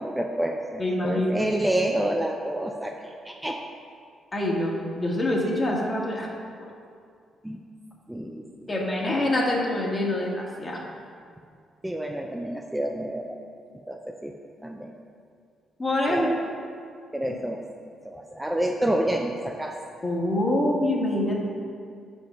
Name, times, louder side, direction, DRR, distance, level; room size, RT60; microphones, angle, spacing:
voice 1, 0.0-3.6 7.4-7.6 8.1-8.7 11.8-13.4 13.9-14.4 14.6-14.9 16.1-16.4 17.1-17.6 18.0-19.8, right 1 dB, 10° right, 2 dB, 0.5 m, -29 dB
voice 2, 0.8-1.3 4.3-6.3 6.6-6.7 8.7-10.8 15.8-16.4 20.0-21.3, left 1 dB, 30° left, -2 dB, 1.6 m, -25 dB
5.3 x 5.0 x 5.7 m, 2.3 s
hypercardioid pair, 50°, 0 cm